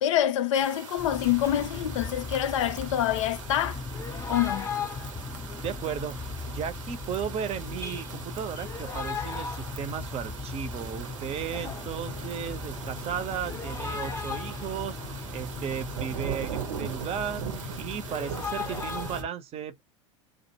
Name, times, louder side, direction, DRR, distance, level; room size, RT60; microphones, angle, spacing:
voice 1, 0.0-3.8 4.3-4.7, left 11 dB, 70° left, 0.5 m, -26 dB
sound 1, 0.5-19.2, right 8 dB, 75° right, 0.6 m, -41 dB
sound 2, 1.0-19.3, left 5 dB, 15° left, 0.5 m, -37 dB
voice 2, 5.6-19.8, right 8 dB, 40° right, 0.6 m, -35 dB
2.4 x 2.1 x 2.8 m
hypercardioid pair, 80°, 16 cm